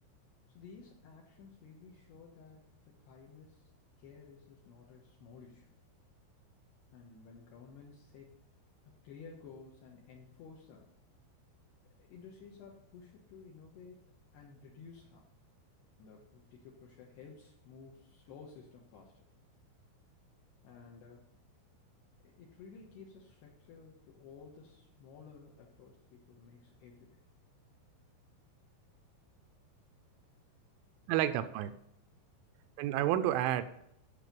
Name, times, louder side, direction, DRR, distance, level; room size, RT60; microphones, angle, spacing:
voice 1, 0.5-3.7 4.0-5.7 6.9-8.3 9.0-10.9 12.0-15.3 16.0-19.2 20.6-21.3 22.2-27.2, left 5 dB, 65° left, -2 dB, 3.1 m, -54 dB
voice 2, 31.1-31.7 32.8-33.6, right 12 dB, 85° right, 11 dB, 2.9 m, -30 dB
12.0 x 6.7 x 5.2 m, 0.75 s
omnidirectional pair, 5.7 m